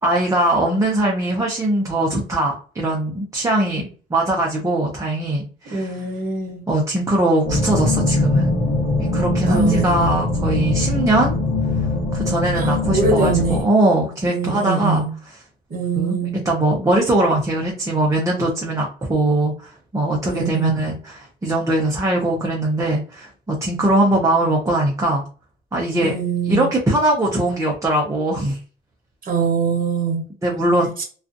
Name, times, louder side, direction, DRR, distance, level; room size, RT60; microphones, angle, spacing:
voice 1, 0.0-6.1 6.7-8.5 9.0-11.3 12.1-15.0 16.0-25.2 25.7-26.1 26.5-28.6 30.4-31.0, right 1 dB, 15° right, -1 dB, 0.6 m, -21 dB
voice 2, 5.7-6.6 9.4-10.2 12.5-13.6 14.2-15.1 15.7-16.4 20.2-20.8 26.0-26.7 29.2-30.2 31.0-31.1, right 4 dB, 45° right, 0 dB, 1.0 m, -23 dB
sound 1, 7.4-13.6, left 2 dB, 55° left, 1.0 m, -21 dB
2.4 x 2.4 x 2.5 m, 0.39 s
cardioid pair, 90°, 20 cm